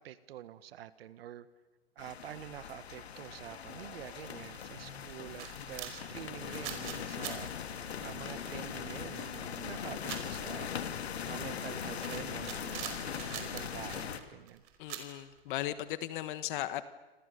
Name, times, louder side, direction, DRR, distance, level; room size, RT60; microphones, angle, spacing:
voice 1, 0.0-1.5 2.0-10.7 11.2-13.0 13.3-14.6, right 11 dB, 70° right, 14 dB, 1.6 m, -47 dB
sound 1, 2.0-14.2, left 8 dB, 85° left, 2.4 m, -40 dB
sound 2, 3.2-4.2 4.4-15.8, right 11 dB, 40° right, 5.0 m, -46 dB
voice 2, 14.8-16.9, left 13 dB, 55° left, 13 dB, 1.4 m, -37 dB
27.5 x 27.0 x 6.9 m, 1.2 s
hypercardioid pair, 135°, 31 cm